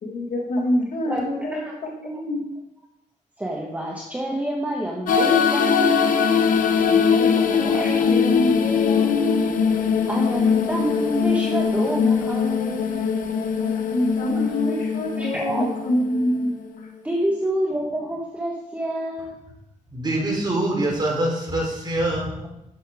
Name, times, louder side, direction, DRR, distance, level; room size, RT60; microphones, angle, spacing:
voice 1, 0.0-2.5 6.9-9.4 13.6-16.6 16.8-16.9, left 1 dB, 75° left, 0 dB, 2.0 m, -26 dB
voice 2, 1.1-2.2 3.4-6.4 7.5-8.0 10.1-13.0 15.1-15.6 17.0-19.4, right 1 dB, 10° right, -1 dB, 1.2 m, -28 dB
sound 1, 5.1-16.9, left 6 dB, 90° left, 0.8 m, -21 dB
voice 3, 19.9-22.5, right 1 dB, 30° right, -1 dB, 3.3 m, -24 dB
11.0 x 6.6 x 3.5 m, 0.82 s
cardioid pair, 90°, 14 cm